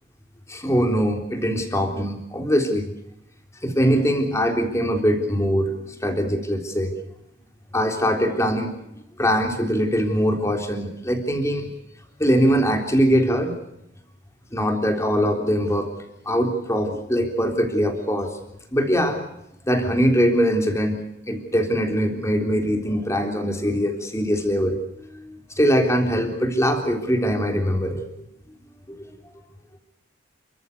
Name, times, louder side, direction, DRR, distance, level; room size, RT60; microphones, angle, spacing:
voice 1, 0.5-2.9 3.6-6.9 7.7-8.7 9.2-11.7 12.2-13.6 14.5-15.9 16.3-18.4 18.7-19.2 19.7-21.0 21.3-28.1 28.9-29.1, equal, 15° left, 4 dB, 3.7 m, -22 dB
29.5 x 14.5 x 8.2 m, 0.82 s
head